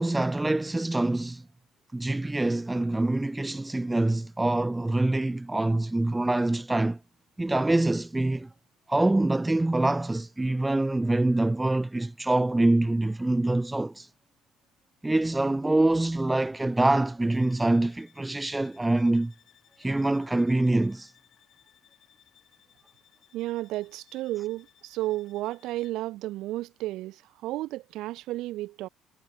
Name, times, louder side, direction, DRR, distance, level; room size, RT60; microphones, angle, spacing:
voice 1, 0.0-1.4 1.9-7.0 7.4-8.5 8.9-14.1 15.0-19.3 19.8-21.1, right 2 dB, 10° right, 0.4 m, -25 dB
sound 1, 17.3-26.1, left 11 dB, 45° left, 5.2 m, -62 dB
voice 2, 23.3-28.9, right 16 dB, 65° right, 1.1 m, -33 dB
cardioid pair, 160°, 0 cm